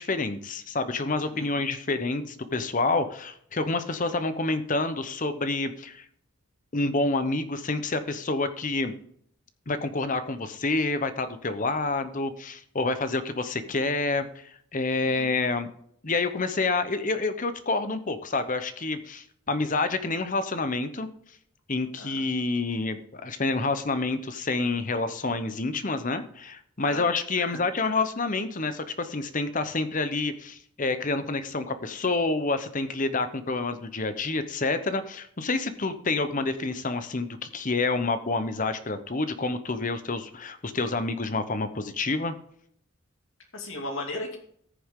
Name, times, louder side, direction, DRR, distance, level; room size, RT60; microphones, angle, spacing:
voice 1, 0.0-6.0 6.7-8.9 9.7-15.7 16.0-21.1 21.7-42.3, left 3 dB, 35° left, 10 dB, 0.9 m, -28 dB
voice 2, 43.5-44.4, left 2 dB, 60° left, 2 dB, 2.6 m, -36 dB
14.5 x 6.9 x 3.7 m, 0.64 s
head